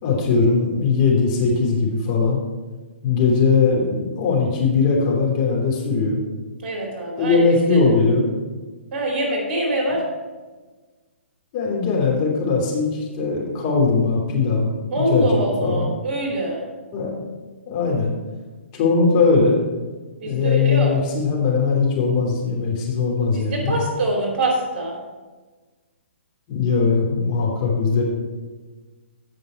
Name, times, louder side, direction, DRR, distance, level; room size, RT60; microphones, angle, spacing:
voice 1, 0.0-2.4 3.0-6.2 7.2-8.3 11.5-15.9 16.9-17.1 17.7-18.1 18.8-19.6 20.2-23.8 26.5-28.0, left 4 dB, 35° left, -2 dB, 3.0 m, -20 dB
voice 2, 6.6-7.4 7.7-7.9 8.9-10.0 14.9-16.6 20.2-20.9 23.3-24.9, right 1 dB, 45° right, 0 dB, 2.8 m, -24 dB
15.5 x 5.3 x 4.5 m, 1.3 s
figure-of-eight pair, 125°, 7 cm